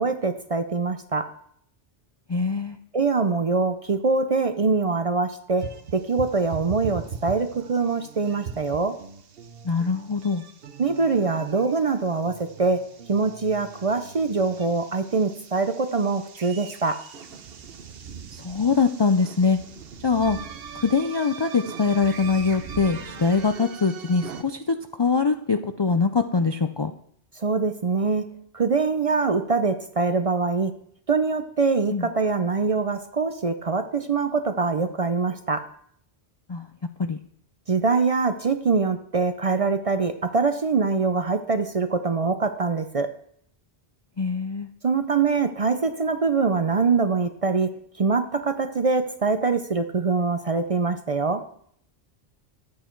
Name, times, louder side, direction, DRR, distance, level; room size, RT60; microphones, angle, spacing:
voice 1, 0.0-1.3 2.9-9.0 10.8-17.0 27.4-30.7 31.1-35.7 37.7-43.1 44.8-51.5, right 4 dB, 45° right, 9 dB, 0.5 m, -24 dB
voice 2, 2.3-2.8 9.6-10.4 18.3-19.6 20.0-20.4 20.8-26.9 31.9-32.1 36.5-36.6 37.0-37.2 44.2-44.7, left 4 dB, 40° left, 7 dB, 0.3 m, -23 dB
sound 1, 5.6-24.4, right 6 dB, 65° right, 1.0 m, -40 dB
11.5 x 8.5 x 4.5 m, 0.66 s
omnidirectional pair, 1.1 m